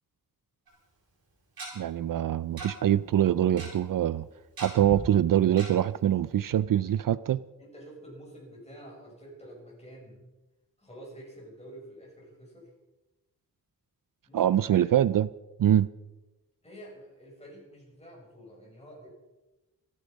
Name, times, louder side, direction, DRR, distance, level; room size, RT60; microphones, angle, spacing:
Tick-tock, 0.7-0.8 1.6-1.7 2.6-2.7 2.9-3.0 3.3-3.7 4.6-5.0 5.6-5.7 6.1-6.2 6.5-6.6, right 3 dB, 85° right, 7.2 m, -39 dB
voice 1, 1.8-4.3 4.6-7.4 14.3-15.3 15.6-15.9, right 11 dB, 65° right, 0.5 m, -24 dB
voice 2, 7.6-10.2 10.8-12.7 14.3-14.9 16.6-19.1, right 1 dB, 15° left, 6.5 m, -48 dB
26.0 x 10.0 x 5.2 m
wide cardioid pair, 150°, 35 cm